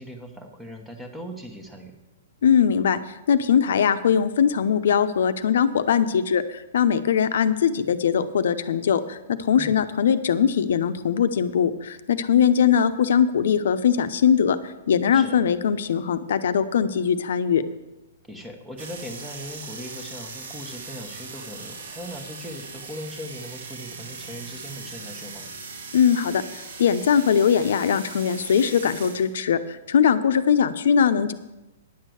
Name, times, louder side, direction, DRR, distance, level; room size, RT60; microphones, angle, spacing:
voice 1, 0.0-1.9 9.6-9.7 15.1-15.4 18.3-25.5, equal, 5° right, 3 dB, 1.1 m, -39 dB
voice 2, 2.4-3.0 3.3-17.6 25.9-29.6 29.9-31.3, left 7 dB, 70° left, 10 dB, 0.8 m, -21 dB
sound 1, 18.8-29.3, right 4 dB, 70° right, 1.8 m, -39 dB
10.0 x 6.5 x 7.7 m, 0.98 s
hypercardioid pair, 165°, 0 cm